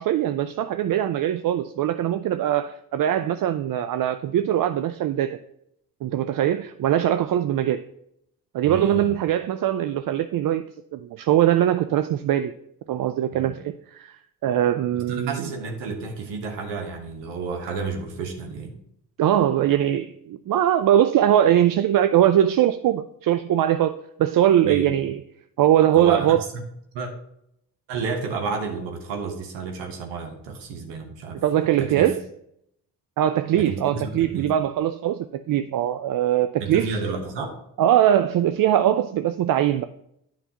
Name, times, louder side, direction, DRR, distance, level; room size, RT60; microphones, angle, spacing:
voice 1, 0.0-5.4 6.0-7.8 8.5-12.5 12.9-15.4 19.2-25.2 25.6-26.4 31.4-32.2 33.2-36.9 37.8-39.8, right 11 dB, 55° right, 0.5 m, -21 dB
voice 2, 8.6-9.2 13.3-13.5 14.9-18.8 24.6-25.0 25.9-26.6 26.9-27.1 27.9-31.4 31.8-32.1 33.5-34.5 36.6-37.5, right 4 dB, 85° right, 1.1 m, -31 dB
8.9 x 5.6 x 2.8 m
hypercardioid pair, 40°, 42 cm